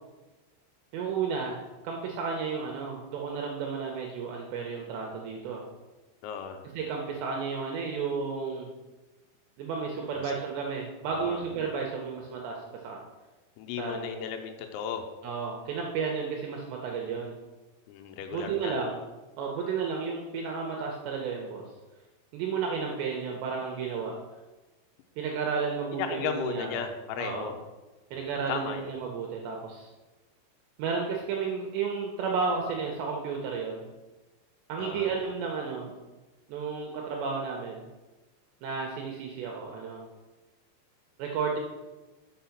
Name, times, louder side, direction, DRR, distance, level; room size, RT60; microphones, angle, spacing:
voice 1, 0.9-5.6 6.7-8.7 9.6-13.0 13.8-14.1 15.2-17.4 18.3-19.0 19.4-21.7 22.3-24.2 25.2-26.8 27.2-27.5 28.1-29.9 30.8-33.9 34.7-35.9 36.5-37.8 38.6-40.0 41.2-41.6, right 5 dB, 85° right, 1 dB, 2.5 m, -32 dB
voice 2, 6.2-6.6 10.1-10.3 11.1-11.4 13.6-15.0 17.9-18.8 26.0-27.6 28.1-28.9 34.8-35.1, left 7 dB, 90° left, 5 dB, 3.4 m, -35 dB
6.6 x 5.6 x 5.8 m, 1.2 s
omnidirectional pair, 6.0 m